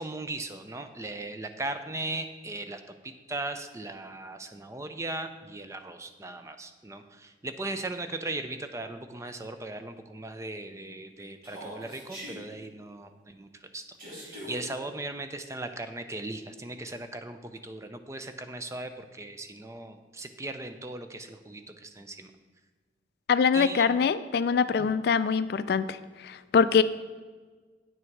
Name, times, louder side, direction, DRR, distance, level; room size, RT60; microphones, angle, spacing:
voice 1, 0.0-13.8 14.1-22.3 23.5-24.1 24.8-24.9 26.8-26.9, right 2 dB, 15° right, 8 dB, 0.5 m, -38 dB
Human voice, 11.4-12.4 14.0-14.6, equal, 55° right, 3.0 m, -41 dB
voice 2, 23.3-26.0 26.2-26.8, left 6 dB, 60° left, 14 dB, 0.3 m, -23 dB
9.1 x 6.2 x 4.6 m, 1.4 s
head